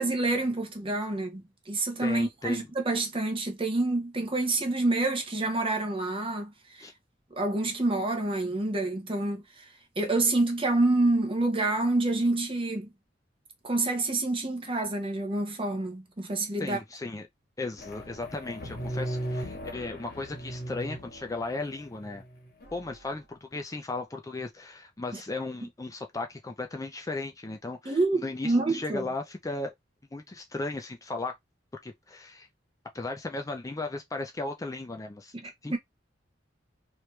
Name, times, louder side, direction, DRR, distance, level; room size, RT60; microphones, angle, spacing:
voice 1, 0.0-6.9 7.3-9.6 10.0-12.9 13.6-16.8 27.8-29.1 35.3-35.8, right 2 dB, 30° right, 1.0 m, -28 dB
voice 2, 2.0-2.7 6.8-6.9 16.6-17.3 17.6-22.2 22.7-29.7 30.1-31.4 31.8-32.5 32.9-35.3 35.6-35.8, left 3 dB, 20° left, 0.4 m, -36 dB
sound 1, 17.8-22.7, right 1 dB, 55° left, 1.5 m, -37 dB
3.1 x 3.0 x 3.2 m
head